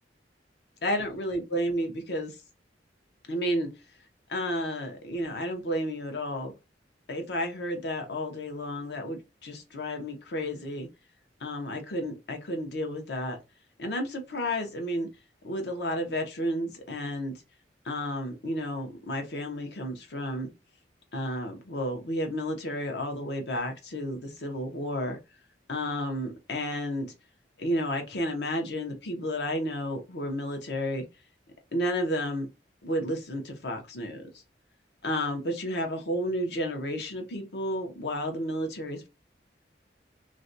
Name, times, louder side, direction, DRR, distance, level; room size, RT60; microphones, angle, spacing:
voice 1, 0.8-2.4 3.3-3.7 4.3-6.5 7.1-10.9 11.4-13.4 13.8-15.1 15.4-17.4 17.8-20.5 21.1-25.2 25.7-27.1 27.6-31.0 31.7-32.5 32.8-34.3 35.0-39.1, equal, 65° left, 0.7 m, -31 dB
2.5 x 2.1 x 2.6 m
head